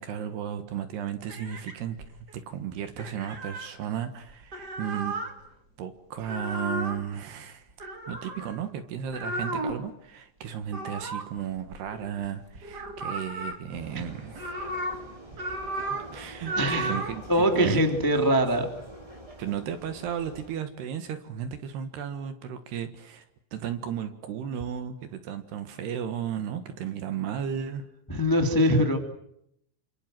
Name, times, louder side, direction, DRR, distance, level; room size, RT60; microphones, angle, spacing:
voice 1, 0.0-2.0 2.3-5.2 5.8-7.7 8.1-14.5 15.7-15.8 16.1-17.2 17.5-17.8 19.4-23.2 23.5-27.9, right 9 dB, 65° right, 9 dB, 3.1 m, -34 dB
sound 1, 1.3-2.3 3.0-3.7 4.3-5.3 6.2-7.0 7.8-8.6 9.1-9.9 10.7-12.3 12.5-13.6 14.1-15.0 15.3-16.1 16.4-17.2, right 1 dB, 30° right, 2.0 m, -34 dB
Vehicle, 13.7-20.6, equal, 10° right, 2.0 m, -46 dB
voice 2, 16.6-16.9 17.3-18.7 28.1-29.0, equal, 15° left, 4 dB, 0.7 m, -23 dB
28.0 x 27.0 x 7.7 m, 0.76 s
omnidirectional pair, 5.9 m